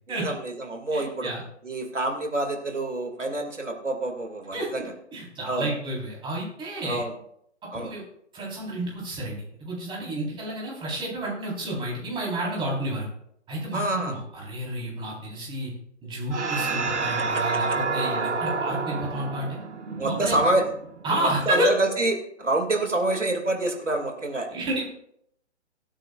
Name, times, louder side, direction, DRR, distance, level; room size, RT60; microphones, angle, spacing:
voice 1, 0.1-1.3 1.6-4.9 5.4-5.7 6.8-7.1 7.7-8.0 13.7-14.1 17.2-17.4 20.0-20.7 21.2-24.5, right 2 dB, 90° right, 3 dB, 2.3 m, -27 dB
voice 2, 0.9-1.4 4.5-7.0 7.7-8.0 8.3-13.1 13.5-15.7 16.0-19.6 20.2-20.3 21.0-21.7 24.5-24.8, right 1 dB, 15° right, -4 dB, 3.9 m, -30 dB
sound 1, 16.3-21.1, right 4 dB, 75° right, 1.7 m, -29 dB
22.0 x 8.9 x 2.4 m, 0.72 s
figure-of-eight pair, 130°, 36 cm